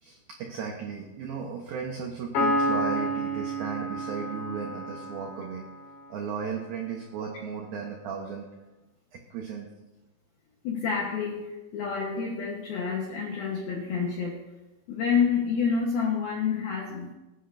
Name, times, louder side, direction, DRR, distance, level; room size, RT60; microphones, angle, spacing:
voice 1, 0.0-5.6 6.1-8.5 9.1-9.7, right 6 dB, 80° right, 1 dB, 2.1 m, -35 dB
Piano, 2.3-5.9, right 1 dB, 60° left, 4.5 m, -29 dB
voice 2, 10.6-14.4 14.9-17.1, left 6 dB, 75° left, -1 dB, 2.2 m, -28 dB
20.0 x 10.0 x 2.6 m, 1.1 s
omnidirectional pair, 5.7 m